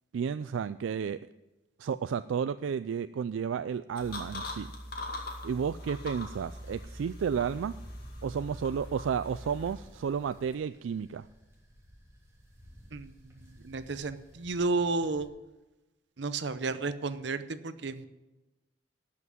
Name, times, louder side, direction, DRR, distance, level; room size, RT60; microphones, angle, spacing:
voice 1, 0.1-1.2 1.8-4.7 5.4-7.8 8.2-11.3, right 7 dB, 85° right, 13 dB, 0.3 m, -32 dB
sound 1, 4.0-10.5, left 1 dB, 50° left, 2.3 m, -42 dB
sound 2, 6.0-15.3, equal, 15° right, 2.8 m, -55 dB
voice 2, 13.6-15.3 16.2-18.0, right 3 dB, 65° right, 12 dB, 0.7 m, -32 dB
12.0 x 5.8 x 9.1 m, 1.0 s
head